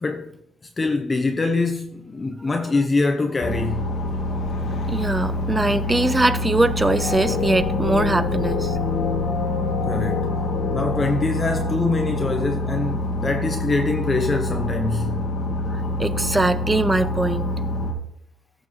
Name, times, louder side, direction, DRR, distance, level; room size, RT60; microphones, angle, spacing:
voice 1, 0.0-0.4 0.8-3.9 9.9-10.3 10.7-15.1, left 3 dB, 30° left, 0.8 m, -24 dB
sound 1, 3.4-17.9, left 1 dB, 70° left, 1.8 m, -26 dB
voice 2, 4.9-8.8 15.7-17.6, right 2 dB, 15° right, 0.6 m, -22 dB
sound 2, 6.9-12.4, left 7 dB, 90° left, 1.2 m, -28 dB
14.0 x 6.0 x 3.1 m
cardioid pair, 90°, 0 cm